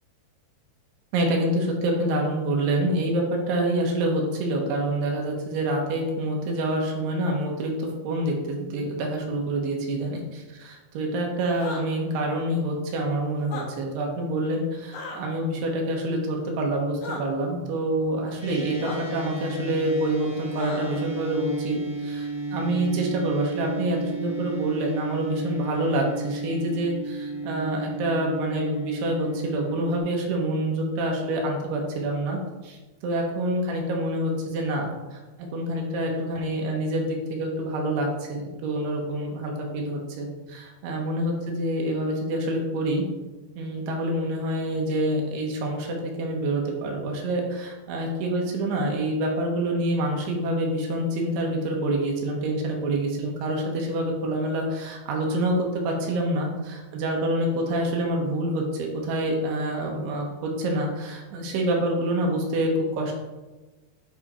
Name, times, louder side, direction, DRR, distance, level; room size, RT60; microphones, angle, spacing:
voice 1, 1.1-43.0 43.6-63.2, right 1 dB, 90° right, 0 dB, 3.3 m, -27 dB
sound 1, 11.5-11.8 13.4-13.7 14.9-15.2 17.0-17.2 18.8-19.0 20.6-21.0, left 3 dB, 70° left, 3.0 m, -35 dB
sound 2, 18.4-30.0, right 2 dB, 10° right, 1.5 m, -33 dB
9.5 x 4.2 x 4.3 m, 1.2 s
omnidirectional pair, 4.5 m